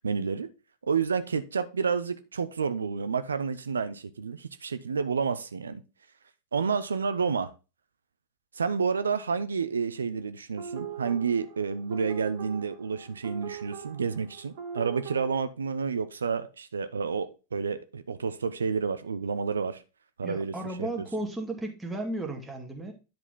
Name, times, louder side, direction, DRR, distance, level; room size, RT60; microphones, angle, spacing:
voice 1, 0.0-0.5 0.9-5.8 6.5-7.5 8.6-19.8 20.2-21.1, right 5 dB, 70° right, 0.6 m, -30 dB
sound 1, 10.6-15.4, right 8 dB, 55° right, 1.7 m, -41 dB
voice 2, 20.2-22.9, right 2 dB, 10° right, 2.2 m, -34 dB
10.5 x 4.7 x 3.6 m
figure-of-eight pair, 90°, 0 cm